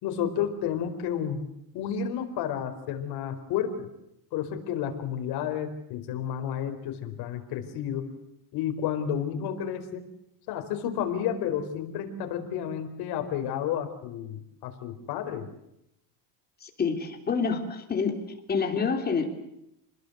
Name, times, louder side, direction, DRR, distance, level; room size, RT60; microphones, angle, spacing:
voice 1, 0.0-1.4 1.7-3.9 4.3-8.1 8.5-10.0 10.5-15.5, left 9 dB, 55° left, 5 dB, 4.5 m, -31 dB
voice 2, 16.6-19.3, left 5 dB, 20° left, 4 dB, 3.2 m, -28 dB
29.0 x 21.0 x 8.0 m, 0.80 s
cardioid pair, 165°, 45 cm